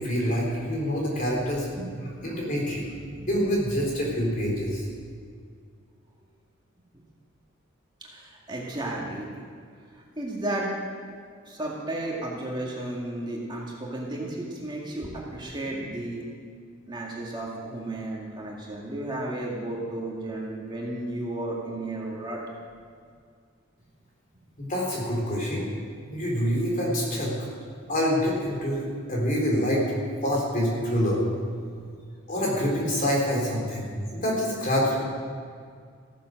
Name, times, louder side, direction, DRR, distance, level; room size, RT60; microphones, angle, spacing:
voice 1, 0.0-1.7 2.2-2.9 3.3-4.8 24.6-25.7 26.1-27.3 27.9-29.9 30.2-31.2 32.3-35.0, equal, 40° left, -3 dB, 3.8 m, -26 dB
voice 2, 8.0-9.3 10.2-10.7 11.4-16.2 16.9-22.4, right 1 dB, 25° right, -3 dB, 2.1 m, -33 dB
15.0 x 10.0 x 6.5 m, 2.1 s
head